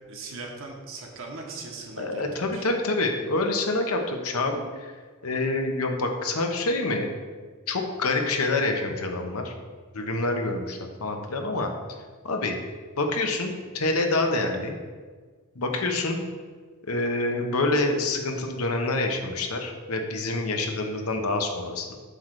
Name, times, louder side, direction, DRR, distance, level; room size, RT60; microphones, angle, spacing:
voice 1, 0.1-2.7, right 3 dB, 60° right, 0 dB, 1.3 m, -39 dB
voice 2, 2.0-4.9 5.2-7.1 7.7-9.5 9.9-11.7 12.2-12.6 13.0-14.7 15.6-16.2 16.9-22.0, left 2 dB, 75° left, 3 dB, 0.9 m, -27 dB
7.9 x 3.3 x 6.3 m, 1.5 s
head